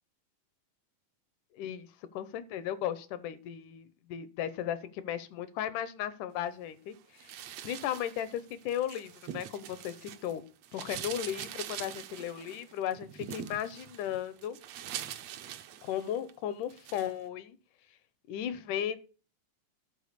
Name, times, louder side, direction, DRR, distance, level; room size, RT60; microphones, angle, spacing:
voice 1, 1.5-1.9 2.1-7.0 7.2-7.3 7.6-10.4 10.7-14.6 15.8-17.6 18.3-19.0, left 10 dB, 80° left, 14 dB, 2.2 m, -35 dB
sound 1, 7.2-10.3 10.6-16.3 16.7-17.1, right 10 dB, 75° right, 1.6 m, -43 dB
11.5 x 4.5 x 6.6 m, 0.37 s
omnidirectional pair, 3.8 m